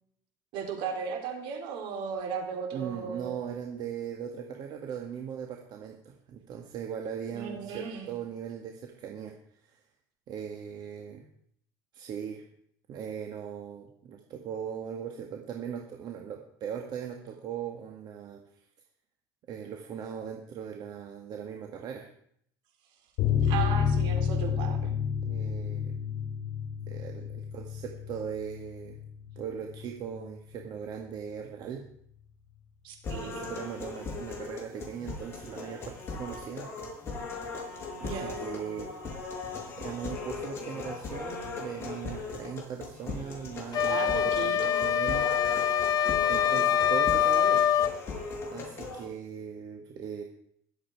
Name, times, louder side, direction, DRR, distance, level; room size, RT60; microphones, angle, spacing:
voice 1, 0.5-3.3 7.3-8.1 23.4-24.8 32.8-33.5 38.0-38.4 43.8-44.8, right 6 dB, 70° right, 4 dB, 3.8 m, -36 dB
voice 2, 2.7-9.8 10.3-11.3 11.9-12.4 12.9-18.4 19.5-22.1 25.2-26.0 26.9-29.0 29.4-31.8 33.2-36.7 38.0-38.9 39.8-45.3 46.3-47.6 48.5-50.2, right 8 dB, 50° right, 3 dB, 1.9 m, -39 dB
sound 1, 23.2-30.3 30.5-30.6 31.0-31.1, left 7 dB, 65° left, 2.4 m, -30 dB
sound 2, 33.0-49.0, left 3 dB, 30° left, 5.9 m, -38 dB
sound 3, 43.7-48.0, left 9 dB, 45° left, 0.8 m, -25 dB
21.5 x 8.0 x 4.7 m, 0.66 s
cardioid pair, 125°, 9 cm